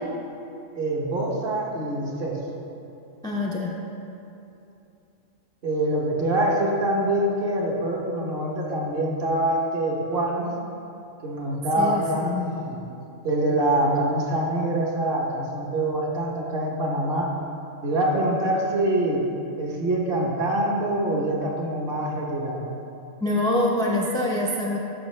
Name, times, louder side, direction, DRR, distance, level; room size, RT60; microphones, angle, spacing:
voice 1, 0.7-2.4 5.6-10.5 11.2-12.8 13.2-17.3 17.8-19.2 19.6-22.6, right 1 dB, 45° right, -2 dB, 1.1 m, -25 dB
voice 2, 3.2-3.7 11.8-12.5 23.2-24.8, left 1 dB, 5° left, -3 dB, 0.4 m, -25 dB
11.0 x 5.7 x 3.2 m, 2.8 s
omnidirectional pair, 1.4 m